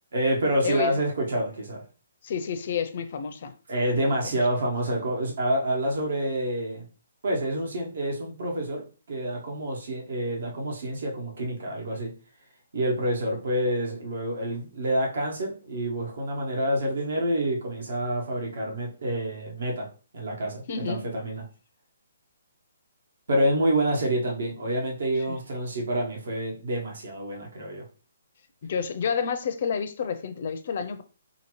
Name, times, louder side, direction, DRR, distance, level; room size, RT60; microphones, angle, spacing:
voice 1, 0.1-1.8 3.7-6.9 7.2-12.1 12.7-19.9 20.1-21.4 23.3-27.9, right 1 dB, 65° right, 1.2 m, -28 dB
voice 2, 0.6-1.0 2.2-3.5 4.0-4.1 20.7-21.0 25.3-25.4 28.7-31.0, left 6 dB, 45° left, 0.4 m, -29 dB
2.9 x 2.6 x 3.0 m
hypercardioid pair, 165°, 0 cm